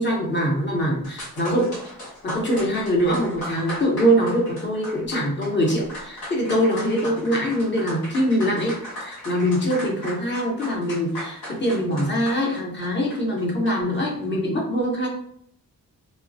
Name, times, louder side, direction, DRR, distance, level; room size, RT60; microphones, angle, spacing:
voice 1, 0.0-1.8 2.2-15.1, equal, 30° left, -1 dB, 0.8 m, -23 dB
sound 1, 1.0-14.0, left 1 dB, 85° left, 1.0 m, -37 dB
3.1 x 2.2 x 2.6 m, 0.67 s
wide cardioid pair, 145°, 36 cm